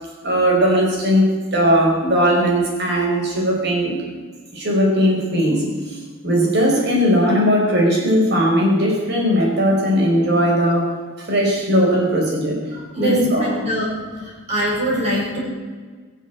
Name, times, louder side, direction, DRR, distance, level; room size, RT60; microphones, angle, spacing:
voice 1, 0.2-4.0 4.5-10.9 11.2-12.6 13.0-13.6, equal, 55° right, -1 dB, 5.3 m, -18 dB
voice 2, 12.7-13.9 14.2-15.4, equal, 35° right, -4 dB, 6.1 m, -24 dB
22.0 x 7.6 x 8.0 m, 1.5 s
head